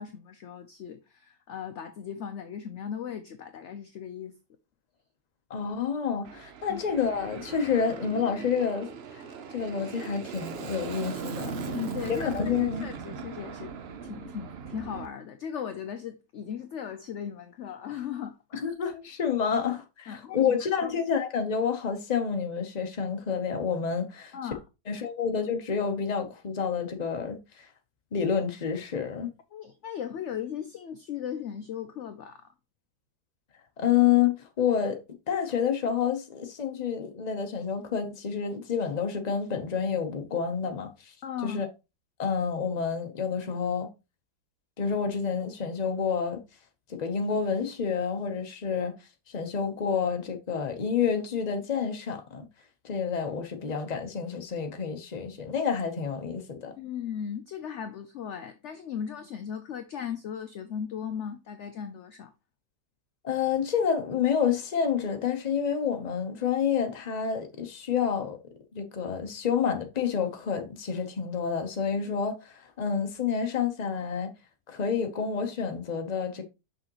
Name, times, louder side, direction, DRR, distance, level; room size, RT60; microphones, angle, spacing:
voice 1, 0.0-4.3 6.7-6.8 11.6-13.7 14.0-18.7 20.1-20.5 20.8-20.9 24.3-24.6 29.5-32.4 41.2-41.6 56.8-62.3, left 8 dB, 65° left, 0.7 m, -37 dB
voice 2, 5.5-8.9 9.5-11.5 12.2-12.8 18.6-24.3 24.9-27.7 28.1-29.3 33.8-35.0 35.3-41.1 41.4-41.7 42.2-43.9 44.8-46.4 46.9-49.0 49.3-52.5 52.8-56.7 63.2-68.4 68.7-74.3 74.7-76.4, left 7 dB, 35° left, 0.8 m, -29 dB
Aircraft, 6.2-15.1, right 6 dB, 60° right, 0.6 m, -39 dB
6.3 x 5.7 x 3.0 m
omnidirectional pair, 1.8 m